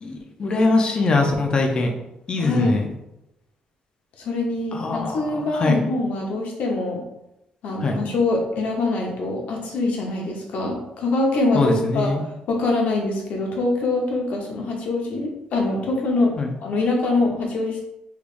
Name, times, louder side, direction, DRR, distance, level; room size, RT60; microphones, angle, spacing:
voice 1, 0.0-1.9 2.3-2.8 4.7-5.8 7.8-8.0 11.5-12.2 16.4-16.5, left 3 dB, 35° left, 3 dB, 0.6 m, -22 dB
voice 2, 2.4-2.8 4.2-7.0 7.6-16.3 16.6-17.8, left 2 dB, 70° left, 0 dB, 0.9 m, -24 dB
3.4 x 3.4 x 2.5 m, 0.88 s
cardioid pair, 135°, 3 cm